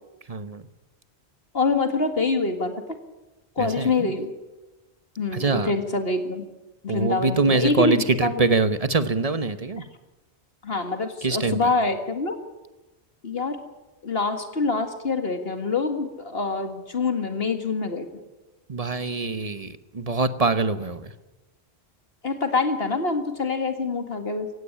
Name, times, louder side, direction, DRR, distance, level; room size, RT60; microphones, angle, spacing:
voice 1, 0.3-0.6 3.6-4.1 5.3-5.7 6.9-9.9 11.2-11.6 18.7-21.1, right 3 dB, 35° right, 12 dB, 1.0 m, -24 dB
voice 2, 1.5-3.0 3.6-4.3 5.2-6.5 6.8-8.5 9.8-9.9 10.6-12.4 13.2-13.6 14.0-18.1 22.2-24.5, left 3 dB, 60° left, 7 dB, 2.1 m, -25 dB
17.5 x 16.0 x 10.0 m, 1.1 s
omnidirectional pair, 1.1 m